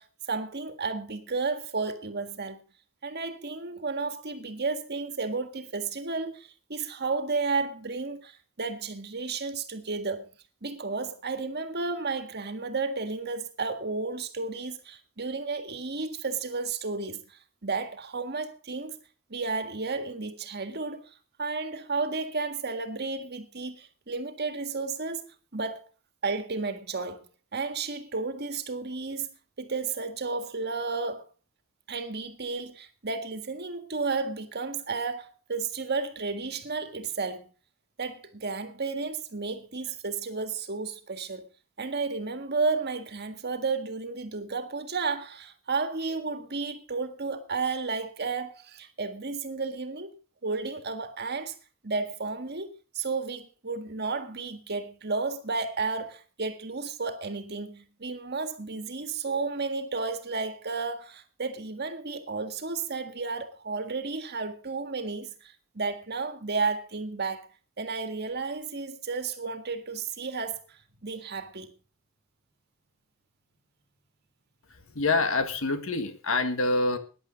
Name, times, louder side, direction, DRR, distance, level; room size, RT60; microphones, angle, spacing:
voice 1, 0.0-2.6 3.0-10.3 10.6-19.0 19.3-25.9 26.2-27.3 27.5-29.3 29.6-31.3 31.9-37.5 38.0-41.5 41.8-50.1 50.4-51.6 51.8-67.5 67.8-71.7, right 4 dB, 50° right, 1.7 m, -32 dB
voice 2, 75.0-77.0, left 3 dB, 70° left, 2.0 m, -26 dB
15.0 x 10.5 x 5.1 m
head